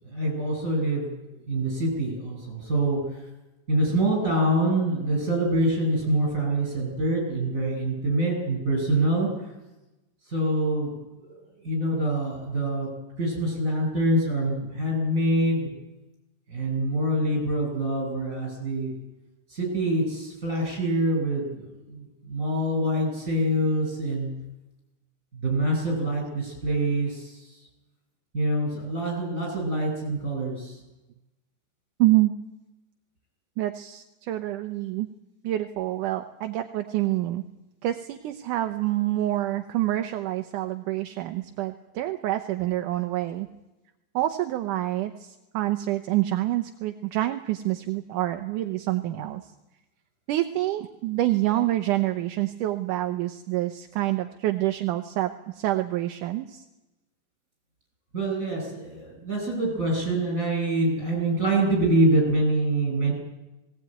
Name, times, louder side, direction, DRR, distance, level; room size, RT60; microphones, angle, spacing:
voice 1, 0.1-3.0 3.7-9.3 10.3-10.9 11.2-11.4 11.6-12.9 13.2-15.7 16.5-18.9 19.5-24.3 25.3-27.4 28.3-30.8 58.1-63.1, right 1 dB, 20° right, 0 dB, 8.4 m, -25 dB
voice 2, 32.0-32.3 33.6-35.1 35.4-37.4 37.8-43.5 44.1-49.4 50.3-55.3 55.6-56.6, right 15 dB, 75° right, 7 dB, 2.3 m, -27 dB
19.0 x 18.5 x 9.1 m, 1.0 s
omnidirectional pair, 3.9 m